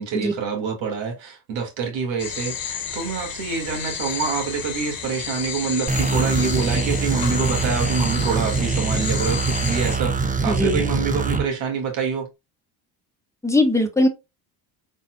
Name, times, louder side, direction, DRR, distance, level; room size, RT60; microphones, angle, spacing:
voice 1, 0.0-12.3, right 5 dB, 65° right, 2.4 m, -26 dB
sound 1, 2.2-10.0, left 8 dB, 45° left, 1.2 m, -31 dB
sound 2, 5.9-11.4, right 4 dB, 15° right, 0.9 m, -23 dB
voice 2, 10.4-10.8 13.4-14.1, left 1 dB, 5° left, 1.3 m, -19 dB
4.2 x 4.1 x 2.4 m
supercardioid pair, 70°, 48 cm